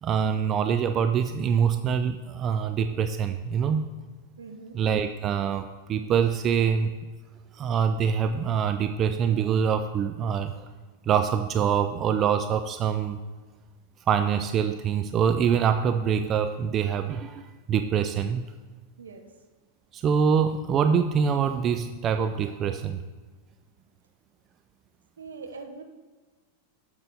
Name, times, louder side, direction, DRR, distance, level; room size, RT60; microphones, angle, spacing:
voice 1, 0.0-3.8 4.7-6.9 7.5-10.5 11.0-13.2 14.1-17.4 17.7-18.5 19.9-23.0, right 7 dB, 30° right, 9 dB, 0.4 m, -25 dB
voice 2, 4.4-4.8 19.0-19.3 25.2-25.8, right 4 dB, 70° right, 5 dB, 1.0 m, -42 dB
9.4 x 7.0 x 4.0 m, 1.3 s
figure-of-eight pair, 90°, 0 cm